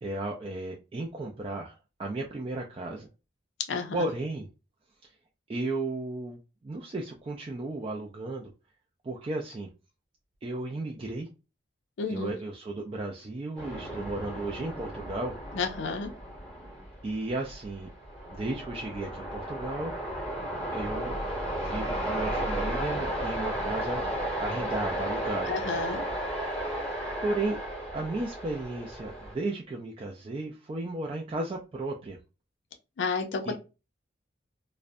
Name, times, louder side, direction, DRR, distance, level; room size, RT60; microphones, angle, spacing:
voice 1, 0.0-3.1 3.9-4.5 5.0-5.1 5.5-8.5 9.0-9.7 10.4-11.3 12.1-15.3 17.0-17.9 18.3-19.9 20.7-21.2 21.6-24.1 24.4-25.6 27.2-27.6 27.9-32.2 33.5-33.6, right 2 dB, 30° right, -1 dB, 0.3 m, -34 dB
voice 2, 3.7-4.0 12.0-12.3 15.5-16.1 25.5-26.0 33.0-33.5, left 4 dB, 75° left, 5 dB, 0.5 m, -31 dB
sound 1, 13.6-29.3, right 1 dB, 5° left, 0.8 m, -34 dB
2.4 x 2.1 x 2.5 m, 0.29 s
head